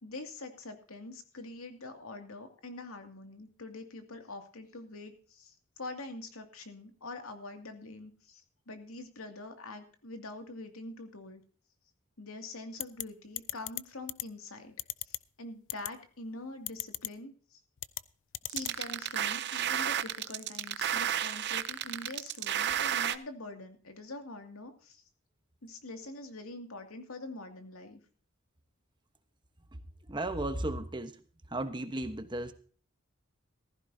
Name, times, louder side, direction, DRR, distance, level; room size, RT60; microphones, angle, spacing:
voice 1, 0.0-11.4 12.2-14.7 15.0-17.6 18.5-25.0 25.6-28.0, left 2 dB, 90° left, 5 dB, 2.4 m, -45 dB
sound 1, 12.8-13.0 13.4-13.8 14.1-14.2 14.8-15.2 15.7-15.9 16.7-17.1 17.8-18.0 18.3-18.7, left 17 dB, 60° left, 0.5 m, -35 dB
sound 2, 18.5-23.2, right 10 dB, 55° right, 0.7 m, -32 dB
voice 2, 30.1-31.2 31.5-32.5, right 1 dB, 20° right, 9 dB, 1.1 m, -35 dB
15.0 x 15.0 x 2.8 m, 0.42 s
head